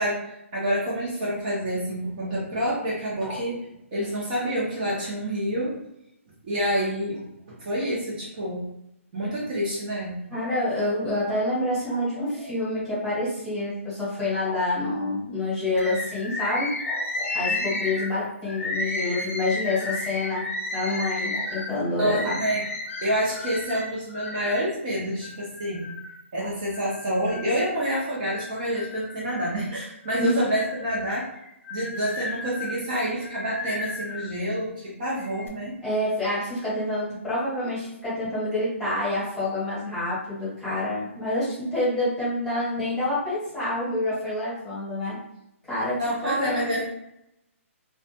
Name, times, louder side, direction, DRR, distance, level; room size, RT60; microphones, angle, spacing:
voice 1, 0.0-3.6 3.9-5.8 6.4-7.2 7.5-8.6 9.1-10.2 17.5-17.8 22.0-22.6 23.0-26.0 26.3-31.3 31.7-35.7 45.9-46.8, equal, 35° right, -6 dB, 0.8 m, -28 dB
voice 2, 10.3-20.4 20.7-22.4 26.3-26.5 30.2-30.4 35.8-45.2 45.7-46.7, left 1 dB, 5° left, -12 dB, 1.2 m, -27 dB
Bird, 15.8-24.7 25.2-26.2 26.7-27.7 28.2-29.6 30.0-34.3 35.0-35.5, left 2 dB, 75° left, 0.5 m, -33 dB
2.4 x 2.2 x 2.8 m, 0.82 s
hypercardioid pair, 160°, 8 cm